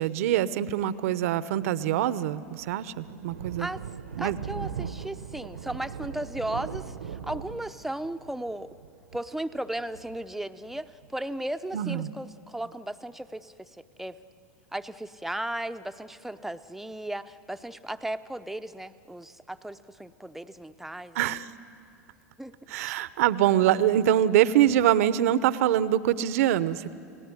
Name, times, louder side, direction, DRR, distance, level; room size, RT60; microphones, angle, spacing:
voice 1, 0.0-3.7 4.2-4.4 11.7-12.1 21.1-21.4 22.7-26.9, right 11 dB, 65° right, 16 dB, 0.9 m, -24 dB
Thunder, 2.1-11.2, right 7 dB, 85° right, 1.2 m, -40 dB
voice 2, 4.2-8.8 9.1-14.2 14.7-21.2 22.4-22.9, right 1 dB, 5° right, 10 dB, 0.8 m, -36 dB
30.0 x 18.0 x 9.7 m, 2.6 s
hypercardioid pair, 95°, 8 cm